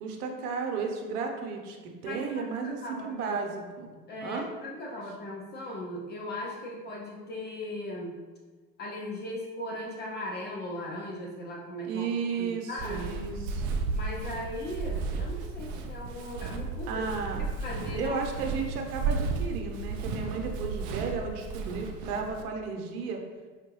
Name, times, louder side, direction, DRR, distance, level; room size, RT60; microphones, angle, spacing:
voice 1, 0.0-3.9 4.2-4.5 11.8-13.9 16.9-17.4 17.9-23.2, right 5 dB, 65° right, 3 dB, 0.9 m, -34 dB
voice 2, 2.1-3.4 4.1-8.2 8.8-12.1 12.4-13.3 13.9-17.0 17.4-18.2, left 1 dB, 25° left, -1 dB, 0.4 m, -38 dB
Walk footsteps, 12.8-22.4, right 4 dB, 40° right, 0.5 m, -34 dB
5.3 x 2.6 x 3.0 m, 1.4 s
hypercardioid pair, 95°, 49 cm